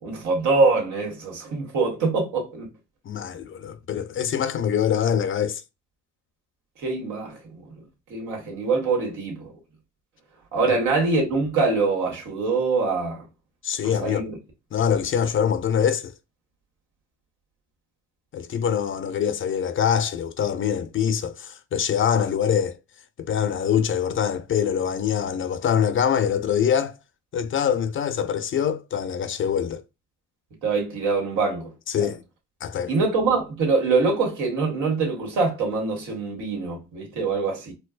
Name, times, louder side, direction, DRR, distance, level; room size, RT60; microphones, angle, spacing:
voice 1, 0.0-2.7 6.8-7.4 8.1-9.5 10.5-13.3 13.8-14.4 30.6-32.1 32.9-37.7, right 4 dB, 85° right, 1.6 m, -24 dB
voice 2, 3.1-5.6 10.7-10.8 13.6-14.2 14.7-16.1 18.3-22.8 23.2-27.0 27.3-29.8 31.9-32.2 32.6-32.9, left 8 dB, 45° left, 0.4 m, -24 dB
4.3 x 2.1 x 2.4 m
cardioid pair, 90°, 30 cm